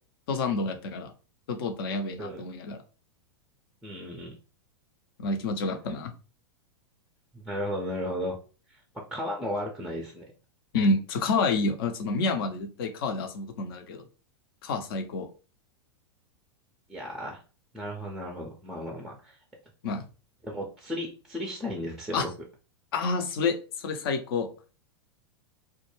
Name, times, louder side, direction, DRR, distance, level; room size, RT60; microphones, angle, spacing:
voice 1, 0.3-1.1 1.5-2.8 5.2-6.1 10.7-14.0 14.6-15.3 19.8-20.0 22.1-22.3 22.9-24.5, left 3 dB, 55° left, 6 dB, 0.6 m, -28 dB
voice 2, 3.8-4.3 5.6-5.7 7.3-8.4 8.7-10.2 16.9-17.4 17.7-19.4 20.4-22.3, equal, ahead, 0 dB, 0.5 m, -35 dB
2.2 x 2.1 x 3.1 m, 0.35 s
figure-of-eight pair, 100°, 14 cm